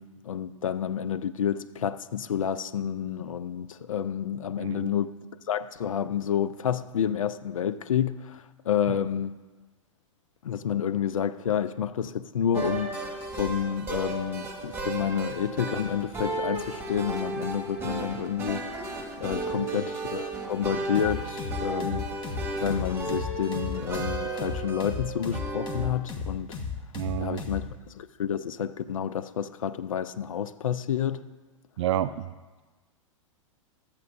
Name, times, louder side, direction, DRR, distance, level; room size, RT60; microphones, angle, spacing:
voice 1, 0.0-5.2 5.5-9.4 10.4-18.6 18.9-22.1 22.6-26.6 27.2-31.2, left 9 dB, 85° left, 0.4 m, -29 dB
voice 2, 4.6-4.9 8.9-9.0 19.5-19.8 26.9-27.4 31.8-32.3, right 12 dB, 60° right, 0.4 m, -30 dB
sound 1, 12.5-25.9, right 3 dB, 15° right, 1.4 m, -34 dB
sound 2, 20.9-27.7, left 5 dB, 25° left, 1.3 m, -34 dB
13.5 x 8.4 x 2.6 m
hypercardioid pair, 105°, 17 cm